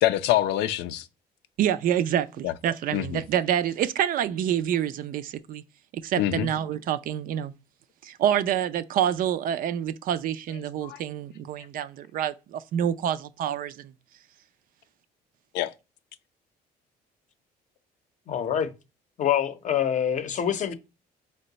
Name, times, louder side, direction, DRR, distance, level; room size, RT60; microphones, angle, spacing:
voice 1, 0.0-1.1 2.4-2.5 2.9-3.2 6.2-6.5 10.8-11.0 15.5-15.7, left 13 dB, 85° left, 0.4 m, -25 dB
voice 2, 1.6-5.6 6.0-7.5 8.0-13.9, right 10 dB, 55° right, 0.4 m, -27 dB
voice 3, 18.3-18.7 19.2-20.7, left 9 dB, 45° left, 0.6 m, -25 dB
4.5 x 2.1 x 3.9 m
cardioid pair, 110°, 17 cm